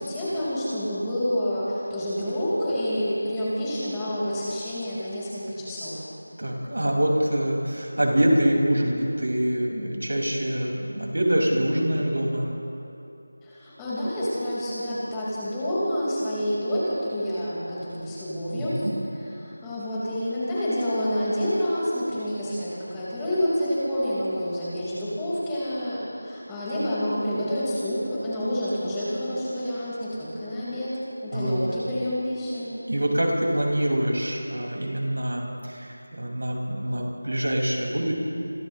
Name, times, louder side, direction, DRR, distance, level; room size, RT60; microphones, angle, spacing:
voice 1, 0.0-6.0 13.4-18.8 19.2-32.7, equal, 10° left, -10 dB, 4.8 m, -28 dB
voice 2, 6.4-12.4 18.6-18.9 31.3-31.6 32.9-38.1, right 1 dB, 80° right, -1 dB, 5.8 m, -25 dB
30.0 x 26.5 x 3.3 m, 2.8 s
figure-of-eight pair, 175°, 0 cm